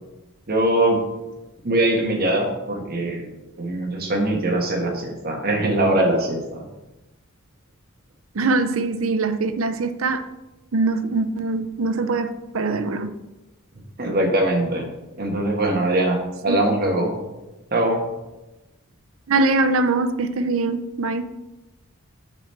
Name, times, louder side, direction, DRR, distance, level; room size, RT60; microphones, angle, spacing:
voice 1, 0.5-1.0 1.6-3.2 3.6-6.6 14.0-14.8 15.2-16.2 16.4-17.1 17.7-18.0, right 1 dB, 45° right, 1.4 m, -21 dB
voice 2, 8.3-10.3 10.7-13.1 16.5-16.6 19.3-21.2, right 3 dB, 65° right, 0.6 m, -22 dB
6.9 x 6.0 x 4.4 m
head